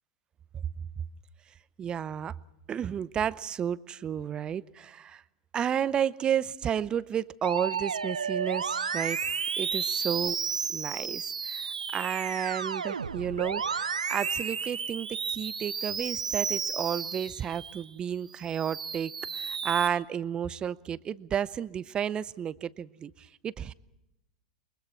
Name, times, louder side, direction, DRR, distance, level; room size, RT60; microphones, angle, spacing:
voice 1, 1.8-2.4 2.7-5.2 5.5-10.4 10.7-23.7, right 9 dB, 25° right, 19 dB, 0.7 m, -32 dB
Musical instrument, 7.4-17.9 18.3-19.9, right 6 dB, 75° right, 1.0 m, -32 dB
29.0 x 23.0 x 4.5 m, 0.87 s
figure-of-eight pair, 95°, 4 cm